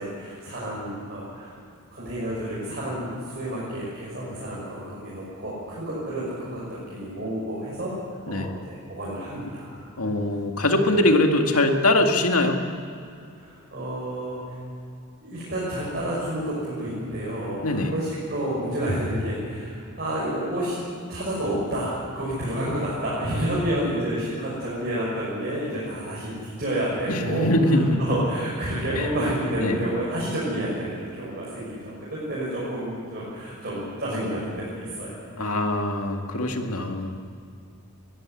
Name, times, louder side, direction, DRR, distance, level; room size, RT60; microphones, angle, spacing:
voice 1, 0.0-1.6 1.9-7.9 8.2-9.8 13.3-14.6 15.2-35.5, right 1 dB, 45° right, -7 dB, 6.2 m, -30 dB
voice 2, 10.0-12.6 17.6-17.9 27.1-28.0 29.0-29.1 29.6-29.8 35.4-37.2, left 1 dB, 90° left, 4 dB, 2.1 m, -22 dB
21.0 x 14.0 x 9.8 m, 2.5 s
head